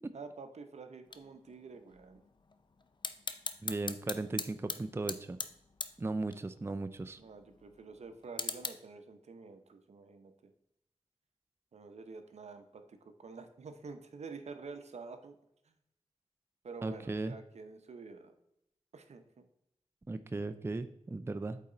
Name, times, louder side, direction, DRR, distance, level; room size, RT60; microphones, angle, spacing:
voice 1, 0.1-2.2 7.2-10.5 11.7-15.4 15.7-15.8 16.6-18.3 18.9-19.4, right 4 dB, 70° right, 8 dB, 0.8 m, -48 dB
sound 1, 1.0-8.7, left 4 dB, 40° left, 0.6 m, -43 dB
voice 2, 3.6-5.4 6.0-7.2 16.8-17.3 20.1-21.6, right 2 dB, 20° right, 10 dB, 0.4 m, -37 dB
8.3 x 4.2 x 3.8 m, 0.79 s
cardioid pair, 50°, 12 cm